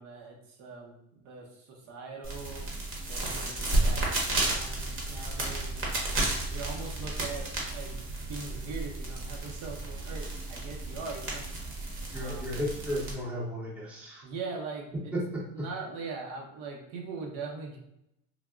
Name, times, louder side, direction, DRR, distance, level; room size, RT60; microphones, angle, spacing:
voice 1, 0.0-2.7 3.1-6.0 6.5-8.0 8.3-11.4 12.1-12.5 14.2-15.1 15.5-17.8, right 4 dB, 70° right, 0 dB, 0.8 m, -41 dB
sound 1, 2.2-13.1, right 2 dB, 35° right, 0.9 m, -32 dB
voice 2, 12.1-14.2, left 1 dB, 5° right, -5 dB, 0.6 m, -34 dB
3.4 x 2.3 x 2.4 m, 0.79 s
cardioid pair, 145°, 35 cm